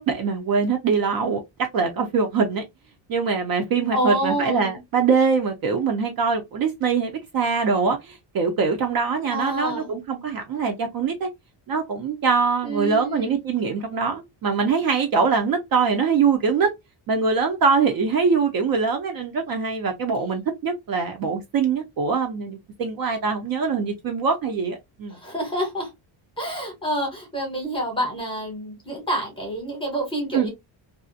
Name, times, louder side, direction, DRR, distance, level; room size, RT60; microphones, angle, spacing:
voice 1, 0.0-2.6 3.1-11.3 11.7-16.7 17.1-25.2 30.3-30.5, right 5 dB, 50° right, 0.5 m, -23 dB
voice 2, 3.9-4.8 9.3-9.9 12.6-13.4 25.1-25.9 26.4-30.5, right 1 dB, 10° left, 0.8 m, -27 dB
2.4 x 2.0 x 2.5 m
cardioid pair, 175°, 48 cm